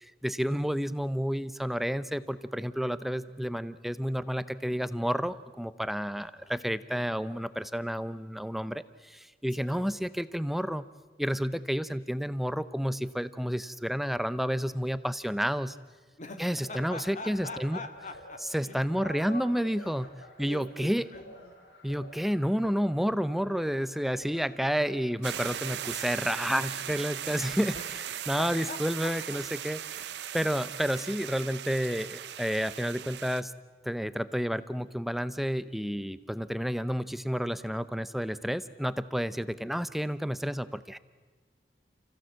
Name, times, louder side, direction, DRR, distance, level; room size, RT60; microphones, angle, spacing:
voice 1, 0.0-10.8 11.2-15.8 16.4-17.8 18.5-20.1 20.4-21.1 21.8-27.8 28.3-33.5 33.8-41.0, equal, ahead, 14 dB, 0.6 m, -30 dB
voice 2, 6.1-6.6 9.5-9.9 16.2-19.5 19.8-20.1 20.4-21.5 27.7-27.9 28.4-29.4 30.1-30.4 36.4-36.7, left 2 dB, 45° left, 7 dB, 1.9 m, -44 dB
sound 1, 16.3-31.1, equal, 85° left, 5.2 m, -54 dB
sound 2, 25.2-33.4, right 10 dB, 65° right, 0.6 m, -38 dB
30.0 x 15.5 x 7.6 m, 1.4 s
head